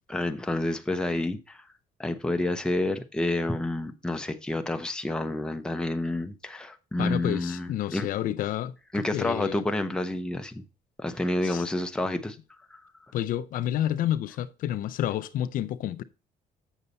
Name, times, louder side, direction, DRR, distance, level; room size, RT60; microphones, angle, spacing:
voice 1, 0.1-1.6 2.0-8.1 8.9-10.6 11.0-12.4 12.7-12.8, left 1 dB, 5° left, 0.7 m, -29 dB
voice 2, 7.0-9.6 11.4-11.7 13.1-16.0, left 12 dB, 65° left, 0.5 m, -30 dB
8.1 x 6.7 x 4.1 m
cardioid pair, 130°, 15 cm